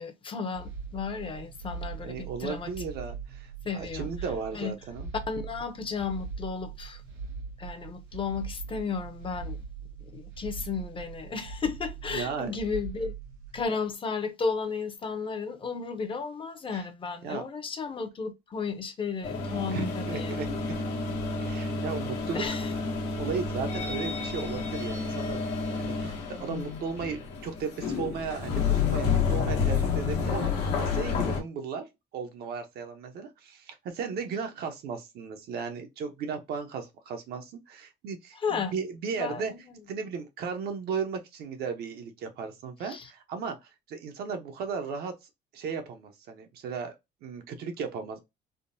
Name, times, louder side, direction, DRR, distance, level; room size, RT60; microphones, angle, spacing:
voice 1, 0.0-2.7 3.6-4.1 4.5-4.7 5.3-7.0 7.6-9.7 10.0-13.1 13.5-20.4 22.3-22.7 38.3-38.7 39.1-39.8 42.8-43.1, left 5 dB, 30° left, 0.6 m, -34 dB
sound 1, 0.5-13.6, right 5 dB, 85° right, 1.4 m, -41 dB
voice 2, 2.0-5.1 12.1-12.6 16.7-16.8 17.2-17.4 19.7-20.8 21.4-22.4 23.2-31.9 32.1-39.5 39.9-45.1 45.5-46.9 47.2-48.2, right 5 dB, 70° right, 0.7 m, -36 dB
sound 2, 19.2-31.4, left 5 dB, 90° left, 1.1 m, -30 dB
3.6 x 2.1 x 2.5 m
cardioid pair, 110°, 17 cm